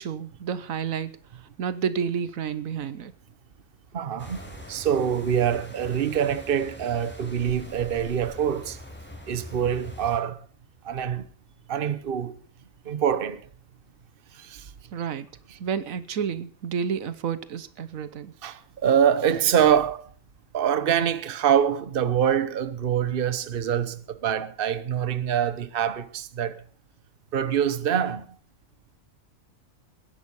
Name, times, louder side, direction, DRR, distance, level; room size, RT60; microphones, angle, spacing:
voice 1, 0.0-3.1 14.9-15.3 15.6-18.3, right 7 dB, 85° right, 1.3 m, -30 dB
voice 2, 3.9-4.4 4.7-8.8 9.3-10.4 10.8-11.3 11.7-12.4 12.8-13.4 14.3-14.7 18.4-20.1 20.5-26.6 27.3-28.3, right 9 dB, 45° right, 1.1 m, -25 dB
sound 1, 4.2-10.2, left 1 dB, 10° left, 4.6 m, -43 dB
19.5 x 11.0 x 5.4 m
omnidirectional pair, 1.4 m